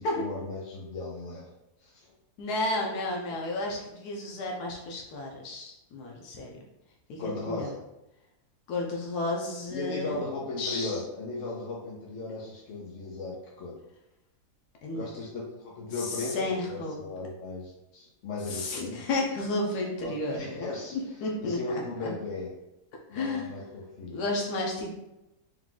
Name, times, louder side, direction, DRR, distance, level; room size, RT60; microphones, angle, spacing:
voice 1, 0.0-1.5 1.8-2.1 7.2-7.8 9.7-13.8 14.9-19.1 20.0-22.5 23.1-24.2, left 3 dB, 60° left, -4 dB, 1.0 m, -37 dB
voice 2, 2.4-6.5 7.1-7.7 8.7-10.2 10.6-11.0 14.8-15.0 16.0-16.9 18.5-20.7 20.9-22.1 23.1-23.5 24.1-24.9, left 2 dB, 90° left, -1 dB, 1.3 m, -32 dB
4.8 x 2.3 x 3.6 m, 0.92 s
omnidirectional pair, 1.7 m